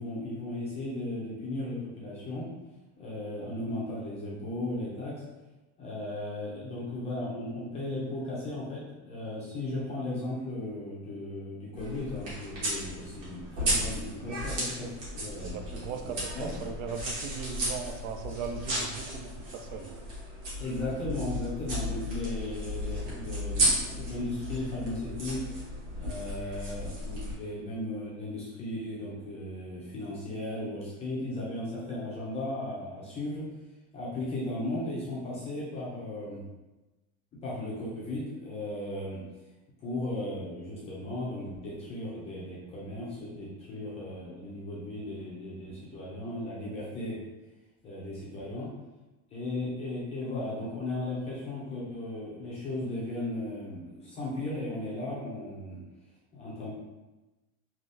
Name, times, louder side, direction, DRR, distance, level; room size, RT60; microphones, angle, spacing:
voice 1, 0.0-2.5 3.0-5.2 5.8-16.6 20.6-25.4 25.9-33.5 33.9-36.4 37.3-39.2 39.8-47.2 47.8-48.7 49.3-55.8 56.3-56.7, left 1 dB, 15° left, -6 dB, 0.4 m, -36 dB
sound 1, 11.7-27.3, equal, 45° right, 1.3 m, -34 dB
voice 2, 15.4-19.9, right 6 dB, 80° right, 5 dB, 0.5 m, -38 dB
3.4 x 2.3 x 2.6 m, 1.1 s
supercardioid pair, 170°, 39 cm